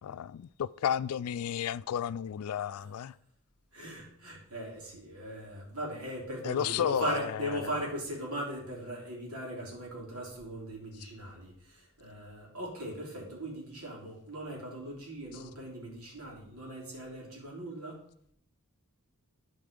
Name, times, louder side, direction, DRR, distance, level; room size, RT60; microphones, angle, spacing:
voice 1, 0.0-3.1 6.4-7.7, left 9 dB, 70° left, 0.3 m, -32 dB
voice 2, 3.7-18.0, right 1 dB, 70° right, 3.3 m, -39 dB
12.0 x 4.7 x 5.2 m
head